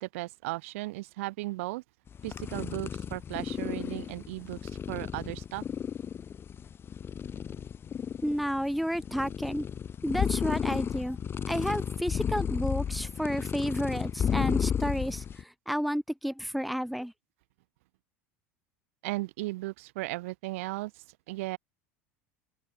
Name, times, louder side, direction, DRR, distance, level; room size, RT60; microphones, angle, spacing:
voice 1, 0.0-1.8 2.2-5.6 19.0-21.6, right 20 dB, 75° right, 1.9 m, -36 dB
sound 1, 2.1-15.4, left 8 dB, 30° left, 2.0 m, -33 dB
voice 2, 8.2-9.7 10.0-11.2 11.5-17.1, equal, ahead, 1.7 m, -31 dB
open air
supercardioid pair, 100°, 7 cm